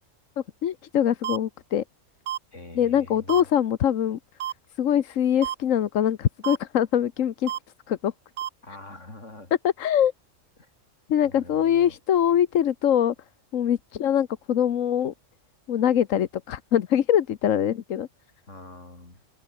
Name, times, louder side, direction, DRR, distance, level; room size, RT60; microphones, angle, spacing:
voice 1, 0.4-1.8 2.7-4.2 4.8-7.5 7.9-8.1 9.6-10.1 11.1-13.1 13.5-15.1 15.7-18.1, left 10 dB, 90° left, 1.3 m, -23 dB
sound 1, 1.2-1.4 2.3-2.4 3.3-3.4 4.4-4.5 5.4-5.6 6.4-6.6 7.5-7.6 8.4-8.5, right 12 dB, 70° right, 0.9 m, -29 dB
voice 2, 2.5-3.4 8.6-9.5 10.6-10.7 11.2-12.0 18.5-19.2, left 2 dB, 70° left, 5.7 m, -44 dB
omnidirectional pair, 1.3 m